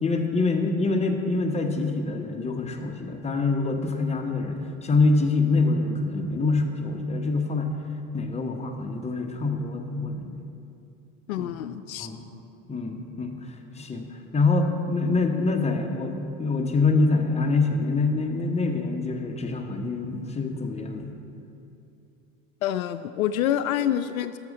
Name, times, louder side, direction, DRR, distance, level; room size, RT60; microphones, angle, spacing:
voice 1, 0.0-7.7 8.1-10.4 11.4-11.5 12.0-12.2 12.7-16.1 16.4-21.1, left 3 dB, 15° left, 3 dB, 1.1 m, -25 dB
voice 2, 11.3-12.1 22.6-24.4, left 11 dB, 80° left, 11 dB, 0.5 m, -27 dB
13.0 x 6.4 x 4.9 m, 2.7 s
hypercardioid pair, 85°, 42 cm